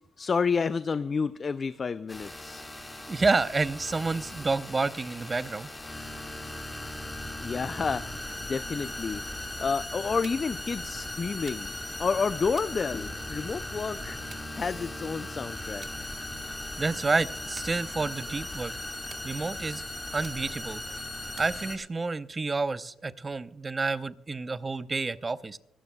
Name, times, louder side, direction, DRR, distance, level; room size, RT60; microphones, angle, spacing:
voice 1, 0.2-2.7 7.4-8.2 8.5-14.2 14.5-15.9, left 5 dB, 40° left, 14 dB, 0.4 m, -30 dB
sound 1, 2.1-21.8, left 1 dB, 15° left, 1.8 m, -38 dB
voice 2, 3.1-5.7 16.4-18.7 19.2-19.8 20.1-20.8 21.4-25.6, right 3 dB, 25° right, 14 dB, 0.6 m, -29 dB
sound 2, 10.2-10.6 11.5-11.9 12.6-13.5 14.3-15.1 15.8-16.0 16.4-16.8 17.6-18.3 19.1-19.7 20.2-20.8 21.4-22.2, right 6 dB, 45° right, 1.2 m, -52 dB
25.0 x 12.5 x 2.2 m, 0.80 s
cardioid pair, 90°, 0 cm